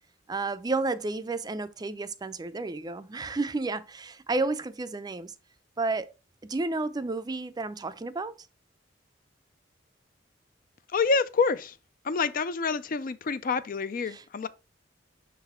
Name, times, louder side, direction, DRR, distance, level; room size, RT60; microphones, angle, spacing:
voice 1, 0.3-5.3 5.8-6.1 6.4-8.4 14.0-14.3, right 3 dB, 20° right, 0.4 m, -31 dB
voice 2, 10.9-11.7 12.0-14.5, left 4 dB, 50° left, 0.5 m, -27 dB
6.4 x 4.0 x 4.2 m
head